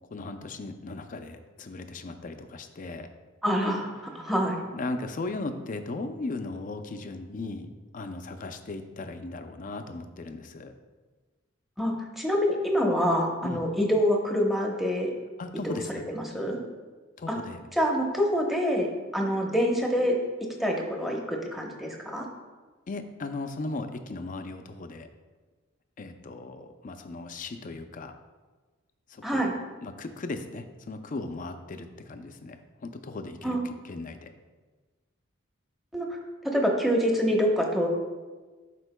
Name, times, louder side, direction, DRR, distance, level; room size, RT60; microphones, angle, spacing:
voice 1, 0.1-3.1 4.2-4.3 4.7-10.7 13.4-13.6 15.4-16.0 17.2-17.6 22.9-25.1 26.0-28.1 29.1-29.5 29.8-34.3, left 2 dB, 40° left, 7 dB, 0.5 m, -37 dB
voice 2, 3.4-3.9 4.1-4.6 11.8-15.1 15.6-15.8 16.1-16.6 17.3-17.4 17.8-18.9 19.1-20.2 20.6-22.3 29.2-29.5 33.4-33.6 35.9-36.1 36.4-37.9, equal, ahead, 0 dB, 0.9 m, -26 dB
12.5 x 4.5 x 2.2 m, 1.3 s
head